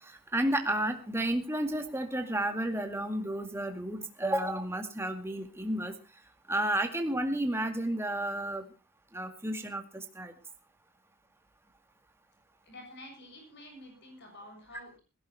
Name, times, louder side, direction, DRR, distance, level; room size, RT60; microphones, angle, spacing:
voice 1, 0.0-5.9 6.5-8.6 9.1-10.3, right 1 dB, 10° right, 6 dB, 2.1 m, -32 dB
voice 2, 12.6-15.0, left 1 dB, 55° left, 4 dB, 7.2 m, -49 dB
20.5 x 16.5 x 2.9 m, 0.30 s
head